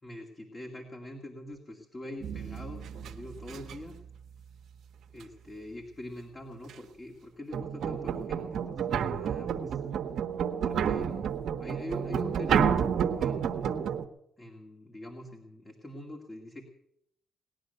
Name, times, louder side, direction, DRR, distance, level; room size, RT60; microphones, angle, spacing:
voice 1, 0.0-4.0 5.1-9.8 10.6-11.2 11.6-12.8 13.2-13.7 14.4-16.6, left 1 dB, 25° left, 2 dB, 2.4 m, -44 dB
sound 1, 2.2-3.9 6.7-6.8 7.5-14.0, right 8 dB, 70° right, 1.2 m, -30 dB
19.0 x 10.5 x 6.8 m, 0.75 s
cardioid pair, 90°, 0 cm